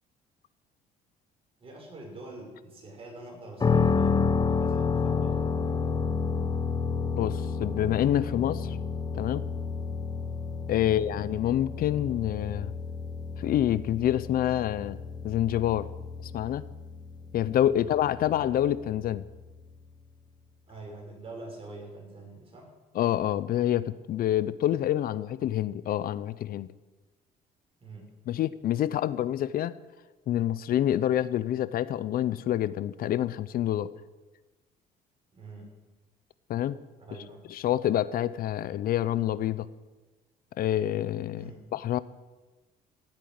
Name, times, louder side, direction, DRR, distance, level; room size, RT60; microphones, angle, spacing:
voice 1, 1.6-5.9 10.8-11.0 17.7-17.9 18.2-18.5 20.7-22.7 27.8-28.1 35.3-35.7 37.0-37.4 41.4-41.6, right 2 dB, 35° right, 0 dB, 6.6 m, -45 dB
sound 1, 3.6-19.5, left 5 dB, 25° left, 0.9 m, -30 dB
voice 2, 7.2-8.8 9.1-9.4 10.7-12.7 13.4-15.0 15.2-15.9 16.3-16.6 17.3-19.2 22.9-26.7 28.3-29.7 30.3-33.9 36.5-36.8 37.5-39.7 40.6-42.0, left 12 dB, 60° left, 16 dB, 0.6 m, -27 dB
16.5 x 9.1 x 9.4 m, 1.2 s
cardioid pair, 110°, 17 cm